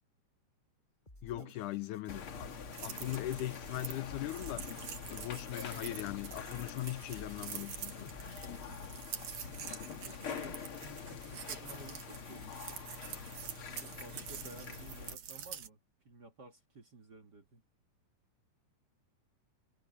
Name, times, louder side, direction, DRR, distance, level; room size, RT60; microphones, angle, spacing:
sound 1, 1.1-9.0, left 1 dB, 10° left, 7.1 m, -57 dB
voice 1, 1.2-2.5 2.8-4.8 5.1-8.2, left 15 dB, 75° left, 2.1 m, -40 dB
sound 2, 2.1-15.2, left 6 dB, 50° left, 2.2 m, -45 dB
sound 3, 2.7-15.7, right 9 dB, 65° right, 3.1 m, -47 dB
voice 2, 8.6-9.1 10.0-10.6 11.0-12.8 13.7-15.8 16.1-17.6, right 2 dB, 40° right, 1.9 m, -55 dB
omnidirectional pair, 3.8 m